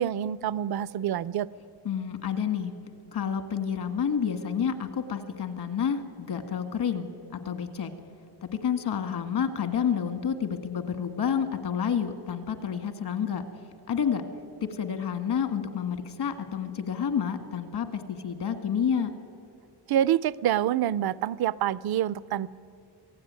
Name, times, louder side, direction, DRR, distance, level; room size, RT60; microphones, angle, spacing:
voice 1, 0.0-1.5 19.9-22.5, right 11 dB, 60° right, 18 dB, 0.6 m, -26 dB
voice 2, 1.8-2.7 3.1-7.9 8.4-13.4 13.9-14.2 14.6-19.1, left 7 dB, 70° left, 8 dB, 1.8 m, -29 dB
27.0 x 17.5 x 9.5 m, 2.5 s
wide cardioid pair, 180°, 41 cm